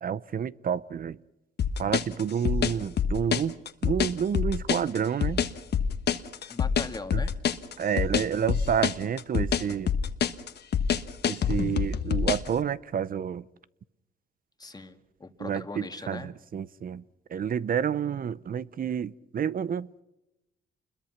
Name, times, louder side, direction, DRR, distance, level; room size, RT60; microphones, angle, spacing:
voice 1, 0.0-1.2 1.8-3.5 3.8-5.4 7.1-7.2 7.8-9.9 11.3-13.4 15.4-17.0 17.3-20.0, right 8 dB, 45° right, 0.7 m, -29 dB
sound 1, 1.6-12.5, left 7 dB, 55° left, 1.4 m, -26 dB
voice 2, 6.5-7.3 14.6-16.3, left 3 dB, 20° left, 2.0 m, -40 dB
28.0 x 21.5 x 5.9 m
cardioid pair, 90°, 20 cm